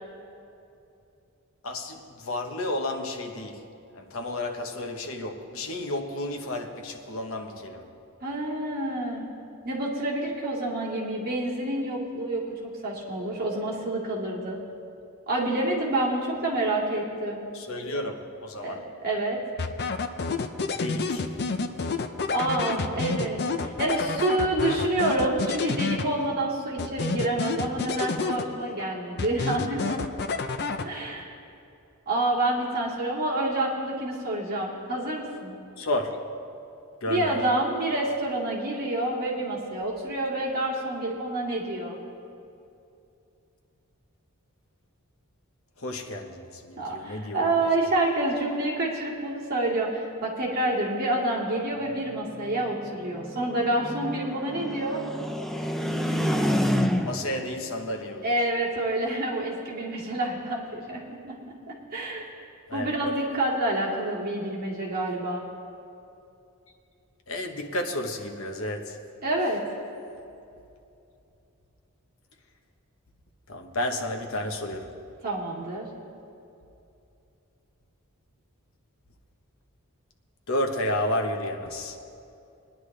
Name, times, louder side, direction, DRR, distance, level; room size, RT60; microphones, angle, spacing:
voice 1, 1.6-3.7 3.9-7.9 17.5-18.9 20.7-21.3 35.8-36.2 37.0-37.4 45.8-47.6 56.8-58.3 62.7-63.1 67.3-69.0 73.5-74.9 80.5-82.0, left 1 dB, 65° left, 1.1 m, -32 dB
voice 2, 8.2-9.2 9.6-14.6 15.3-17.5 18.6-19.4 22.3-30.0 30.8-31.3 32.1-35.5 37.1-42.0 46.8-55.0 58.2-61.4 61.9-62.2 62.7-65.4 69.2-69.6 75.2-75.9, right 1 dB, 45° right, 2.4 m, -28 dB
sound 1, 19.6-26.4 26.8-28.8 29.2-31.2, left 4 dB, 50° left, 0.5 m, -29 dB
sound 2, 51.9-57.4, equal, ahead, 0.6 m, -29 dB
21.5 x 10.5 x 3.3 m
head